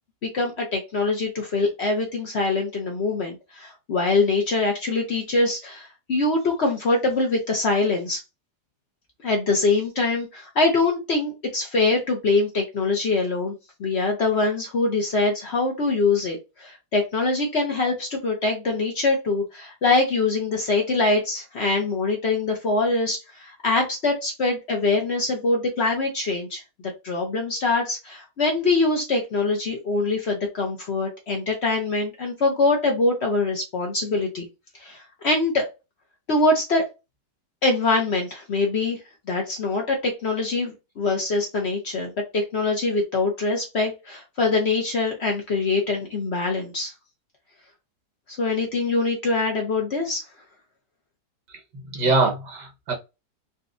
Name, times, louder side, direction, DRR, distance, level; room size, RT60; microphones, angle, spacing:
voice 1, 0.2-8.2 9.2-26.6 27.0-34.5 34.8-35.6 36.3-36.9 37.6-39.0 39.3-46.9 48.4-50.2, left 3 dB, 50° left, 0.8 m, -23 dB
voice 2, 51.5-52.9, right 3 dB, 85° right, 1.8 m, -24 dB
4.0 x 2.3 x 2.5 m
omnidirectional pair, 1.8 m